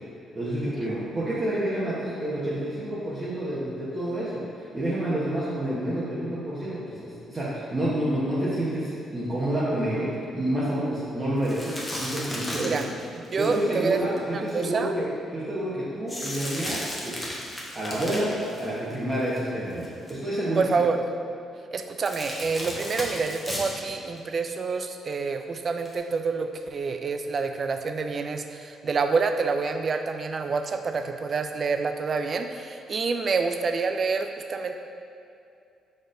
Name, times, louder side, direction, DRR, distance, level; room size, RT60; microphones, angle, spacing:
voice 1, 0.3-12.8 13.4-15.1 15.3-17.2 17.7-18.3 18.6-20.7, right 1 dB, 30° right, -9 dB, 0.9 m, -29 dB
sound 1, 11.4-14.7 16.1-19.4 19.7-20.1 22.0-23.8 24.2-24.3 25.8-26.0, equal, 15° left, 0.9 m, -35 dB
voice 2, 13.2-14.0 14.3-14.9 20.6-21.0 21.7-34.7, right 4 dB, 45° right, 7 dB, 0.3 m, -27 dB
4.9 x 4.2 x 2.5 m, 2.5 s
cardioid pair, 90°, 0 cm